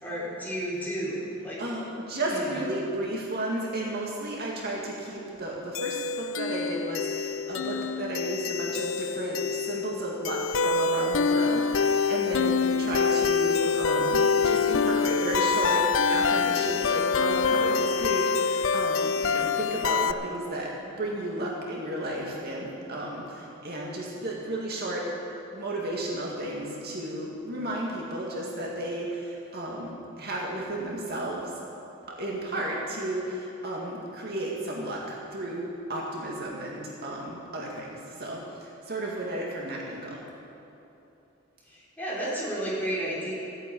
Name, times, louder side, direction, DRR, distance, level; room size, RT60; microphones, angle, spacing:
voice 1, 0.0-1.6 2.3-2.6 41.7-43.3, right 1 dB, 10° left, -7 dB, 4.0 m, -32 dB
voice 2, 1.6-25.0 25.5-31.5 32.2-40.2, right 1 dB, 50° right, -3 dB, 2.1 m, -33 dB
sound 1, 5.7-20.1, left 5 dB, 65° left, 0.5 m, -26 dB
14.5 x 9.2 x 8.6 m, 3.0 s
head